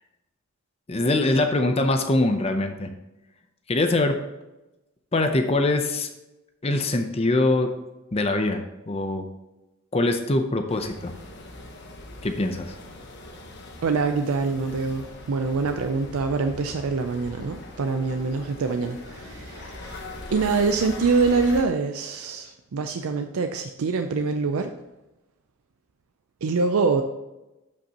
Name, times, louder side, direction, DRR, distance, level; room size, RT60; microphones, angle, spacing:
voice 1, 0.9-2.9 3.7-4.2 5.1-6.1 6.6-7.7 8.1-9.2 9.9-11.1 12.2-12.8, left 2 dB, 30° left, 6 dB, 0.6 m, -23 dB
sound 1, 10.7-21.6, left 2 dB, 50° left, 1.0 m, -41 dB
voice 2, 13.8-24.7 26.4-27.0, right 4 dB, 85° right, 6 dB, 0.5 m, -25 dB
12.0 x 5.3 x 2.9 m, 1.0 s
head